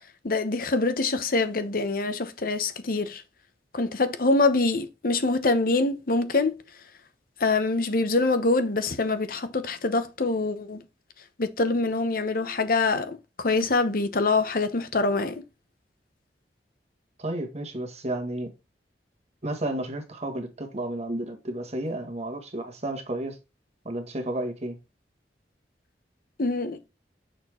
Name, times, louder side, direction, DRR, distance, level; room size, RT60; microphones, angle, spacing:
voice 1, 0.2-3.2 3.7-6.5 7.4-10.8 11.4-15.4 26.4-26.8, left 3 dB, 55° left, 0.9 m, -25 dB
voice 2, 17.2-18.5 19.4-23.4 23.9-24.8, right 1 dB, 40° right, 1.6 m, -32 dB
6.6 x 4.4 x 4.3 m
head